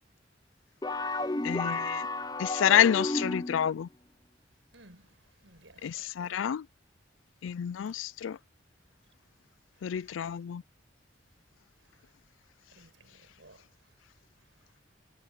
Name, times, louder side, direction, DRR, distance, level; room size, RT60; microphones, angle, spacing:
sound 1, 0.8-3.7, left 2 dB, 20° left, 0.8 m, -32 dB
voice 1, 1.4-2.1 2.4-3.9 5.8-6.6 7.4-8.4 9.8-10.6, left 9 dB, 90° left, 0.4 m, -28 dB
voice 2, 4.7-5.1 5.4-6.4 12.7-13.6, right 2 dB, 80° right, 6.3 m, -57 dB
head